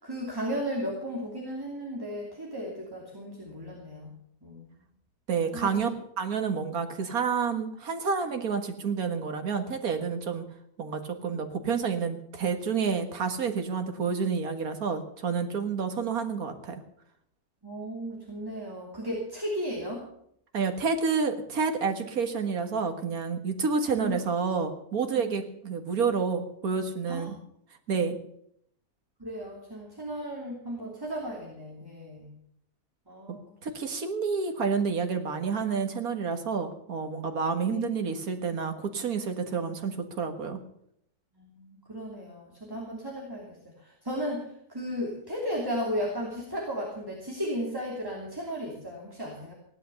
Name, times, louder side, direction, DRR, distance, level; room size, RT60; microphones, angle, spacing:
voice 1, 0.0-4.1 4.4-4.7 5.5-5.8 17.6-20.0 24.0-24.2 25.1-25.3 27.1-27.3 29.2-32.3 33.1-33.4 37.7-37.9 41.3-49.5, equal, 15° right, -2 dB, 3.0 m, -35 dB
voice 2, 5.3-5.9 6.2-10.4 10.8-16.8 20.5-27.3 27.9-28.2 33.3-33.4 33.6-40.6, right 5 dB, 75° right, 6 dB, 2.1 m, -29 dB
16.5 x 11.5 x 7.0 m, 0.71 s
omnidirectional pair, 1.6 m